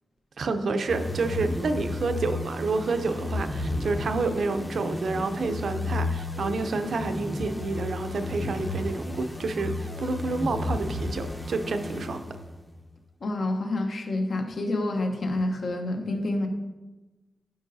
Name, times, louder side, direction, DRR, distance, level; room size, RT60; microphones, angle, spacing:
voice 1, 0.4-12.2, right 3 dB, 65° right, 8 dB, 0.5 m, -29 dB
sound 1, 0.9-12.6, left 2 dB, 15° left, 0.7 m, -33 dB
voice 2, 13.2-16.5, left 2 dB, 60° left, 4 dB, 0.9 m, -28 dB
11.5 x 5.3 x 2.7 m, 1.2 s
wide cardioid pair, 150°, 0 cm